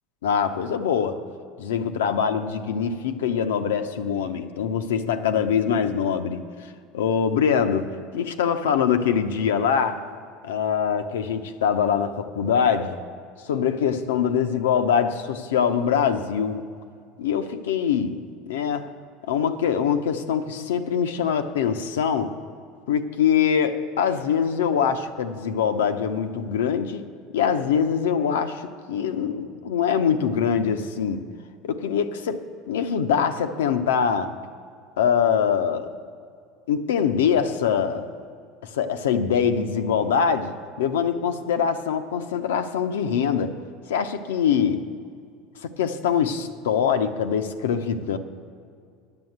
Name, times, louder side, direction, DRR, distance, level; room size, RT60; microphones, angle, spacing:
voice 1, 0.2-1.3 1.6-6.4 6.9-10.1 10.4-13.0 13.4-16.7 17.2-18.9 19.3-22.4 22.9-27.1 27.3-31.3 31.6-34.4 35.0-35.9 36.7-38.1 38.6-43.5 43.9-44.9 45.6-48.2, left 7 dB, 80° left, 8 dB, 0.7 m, -23 dB
9.7 x 6.9 x 7.9 m, 2.2 s
hypercardioid pair, 80°, 0 cm